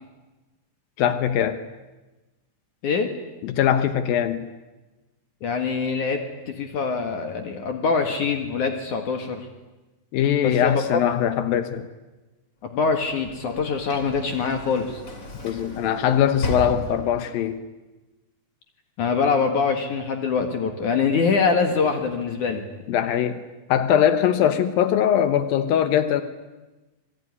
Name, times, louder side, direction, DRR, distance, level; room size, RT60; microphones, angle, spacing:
voice 1, 1.0-1.6 3.4-4.5 10.1-11.9 15.4-17.6 22.9-23.4 23.7-26.2, left 9 dB, 80° left, 10 dB, 2.9 m, -21 dB
voice 2, 5.4-6.2 6.5-9.5 10.4-10.8 12.7-15.0 19.0-22.6, left 5 dB, 60° left, 5 dB, 3.1 m, -24 dB
Sliding door / Slam, 12.7-17.5, left 2 dB, 25° left, 2.8 m, -35 dB
26.5 x 20.0 x 9.7 m, 1.1 s
omnidirectional pair, 4.1 m